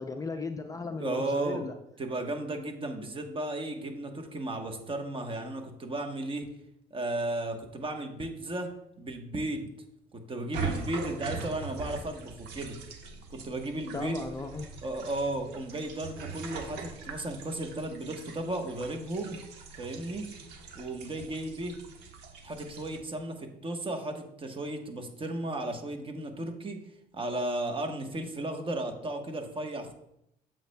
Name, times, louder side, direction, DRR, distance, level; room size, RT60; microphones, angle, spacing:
voice 1, 0.0-1.7 13.9-14.7, left 4 dB, 20° left, 6 dB, 0.5 m, -36 dB
voice 2, 0.8-1.6 2.0-6.5 6.9-8.7 9.0-9.7 10.1-12.8 13.3-14.2 14.8-19.4 19.8-20.3 20.7-21.8 22.4-26.8 27.1-29.9, right 1 dB, 30° right, 4 dB, 1.1 m, -34 dB
sound 1, 10.5-23.0, right 5 dB, 85° right, 1.2 m, -42 dB
8.0 x 7.4 x 2.2 m, 0.80 s
cardioid pair, 110°, 17 cm